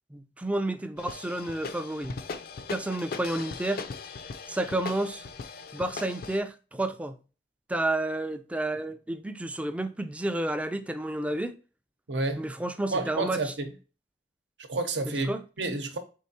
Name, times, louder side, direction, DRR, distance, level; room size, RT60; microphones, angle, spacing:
voice 1, 0.1-2.2 2.7-3.8 4.5-5.2 5.7-7.2 7.7-11.5 12.4-13.5 15.1-15.4, right 1 dB, 10° right, 0.3 m, -31 dB
sound 1, 1.0-6.4, left 5 dB, 60° left, 0.4 m, -39 dB
voice 2, 12.1-12.4 12.9-13.7 14.7-15.3 15.6-16.0, right 2 dB, 90° right, 0.8 m, -29 dB
4.5 x 3.5 x 2.7 m
head